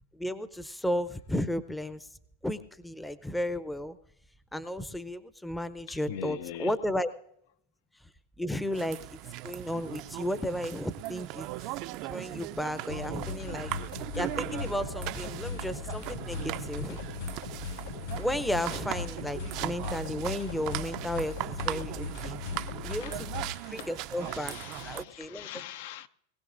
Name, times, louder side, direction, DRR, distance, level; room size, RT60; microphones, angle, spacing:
voice 1, 0.1-2.1 2.4-4.0 4.5-7.1 8.4-9.2 9.4-11.5 12.0-13.7 14.1-17.0 18.2-22.4 22.8-23.3 23.7-24.5 24.8-25.5, left 1 dB, 5° left, 0.6 m, -33 dB
voice 2, 5.9-6.8 22.5-23.2 23.5-26.1, left 11 dB, 65° left, 0.6 m, -43 dB
sound 1, 8.7-25.0, right 16 dB, 50° right, 0.4 m, -39 dB
sound 2, 12.9-23.5, left 4 dB, 80° left, 6.4 m, -38 dB
21.5 x 16.0 x 2.6 m
hypercardioid pair, 125°, 0 cm